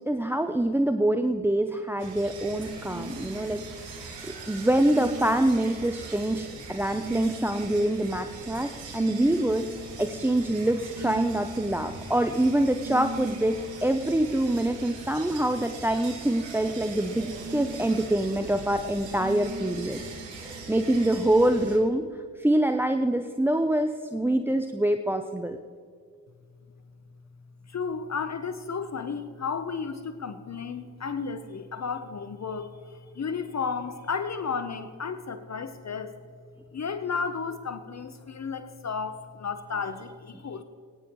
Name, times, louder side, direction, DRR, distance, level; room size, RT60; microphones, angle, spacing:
voice 1, 0.1-3.6 3.9-4.1 4.5-9.6 10.0-20.0 20.3-22.1 22.4-25.6, right 1 dB, 5° right, 7 dB, 0.6 m, -25 dB
sound 1, 2.0-21.8, right 2 dB, 70° right, 2.2 m, -39 dB
voice 2, 27.7-36.2 36.7-40.6, left 5 dB, 35° left, 10 dB, 1.0 m, -33 dB
20.0 x 10.0 x 3.1 m, 2.1 s
hypercardioid pair, 50°, 47 cm